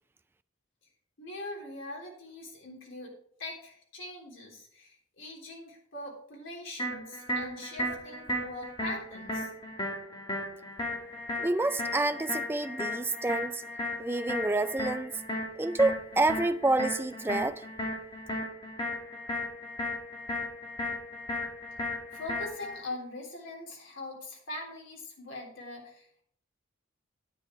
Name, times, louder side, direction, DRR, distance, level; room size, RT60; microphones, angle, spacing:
voice 1, 1.2-3.1 3.4-9.5 22.1-26.2, left 2 dB, 65° left, 3.5 m, -42 dB
sound 1, 6.8-22.8, left 1 dB, 25° left, 2.3 m, -35 dB
voice 2, 11.4-13.6 14.0-15.1 15.6-17.6, right 2 dB, 10° right, 0.3 m, -28 dB
10.0 x 8.3 x 4.6 m
head